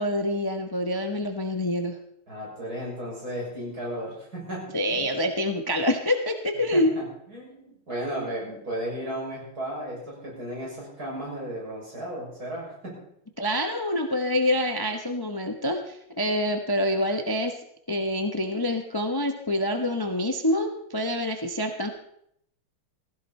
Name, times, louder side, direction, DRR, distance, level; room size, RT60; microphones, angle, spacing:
voice 1, 0.0-2.0 4.7-6.9 13.4-17.5 17.9-21.9, left 1 dB, 30° left, 5 dB, 0.4 m, -26 dB
voice 2, 2.3-5.0 6.7-13.0, right 1 dB, 45° right, -4 dB, 7.0 m, -35 dB
16.0 x 16.0 x 4.3 m, 0.72 s
omnidirectional pair, 2.3 m